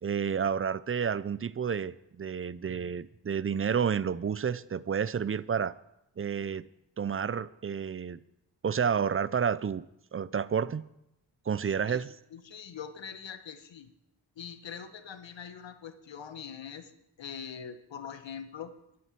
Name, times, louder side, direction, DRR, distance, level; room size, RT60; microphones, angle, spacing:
voice 1, 0.0-5.7 6.2-6.7 7.0-8.2 8.6-9.9 10.1-10.8 11.5-12.1, right 7 dB, 30° right, 18 dB, 0.5 m, -30 dB
voice 2, 11.7-12.0 12.3-13.9 14.4-16.9 17.2-18.7, left 7 dB, 75° left, 10 dB, 1.2 m, -43 dB
11.5 x 9.6 x 7.5 m, 0.83 s
cardioid pair, 75°, 45 cm